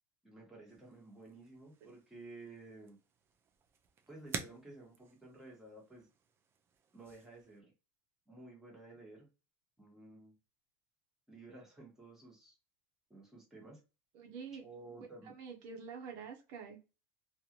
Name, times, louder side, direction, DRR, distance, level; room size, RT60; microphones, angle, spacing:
voice 1, 0.2-3.0 4.1-6.1 6.9-7.7 8.3-9.3 9.8-10.3 11.3-12.6 13.1-13.8 14.6-15.4, right 2 dB, 5° right, -2 dB, 1.4 m, -53 dB
sound 1, 0.7-7.6, right 6 dB, 30° right, 0.5 m, -50 dB
voice 2, 14.1-14.6 15.4-16.8, right 6 dB, 65° right, 2 dB, 1.0 m, -47 dB
2.6 x 2.5 x 2.9 m, 0.29 s
supercardioid pair, 140°, 8 cm